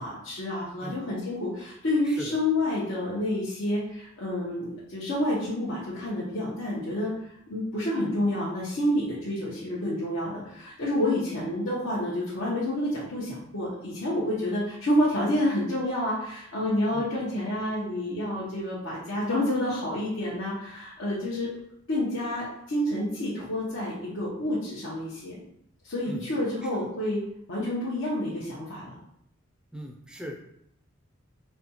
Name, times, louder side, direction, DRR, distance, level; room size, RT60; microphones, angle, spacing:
voice 1, 0.0-7.1 7.5-21.5 21.9-25.4 25.8-27.2 27.5-28.9, left 1 dB, 75° left, -9 dB, 0.8 m, -29 dB
voice 2, 2.0-2.4 16.9-17.1 26.1-26.3 26.6-26.7 29.7-30.4, equal, 5° right, 1 dB, 0.3 m, -39 dB
4.1 x 2.3 x 2.8 m, 0.74 s
head